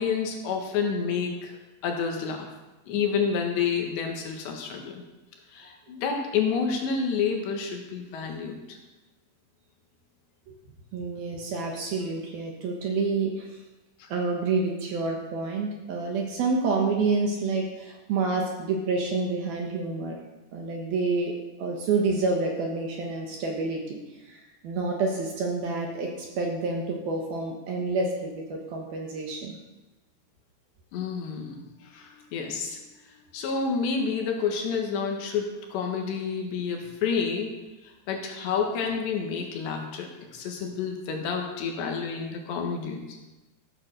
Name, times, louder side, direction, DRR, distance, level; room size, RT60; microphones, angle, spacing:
voice 1, 0.0-1.6 1.8-2.5 2.9-5.0 5.5-8.8 14.0-14.1 30.9-37.5 37.8-43.2, left 6 dB, 70° left, 2 dB, 3.5 m, -29 dB
voice 2, 10.9-13.6 14.1-20.2 20.5-21.3 21.6-24.0 24.3-29.6, right 3 dB, 65° right, 1 dB, 2.7 m, -28 dB
14.5 x 8.5 x 6.6 m, 1.1 s
omnidirectional pair, 5.6 m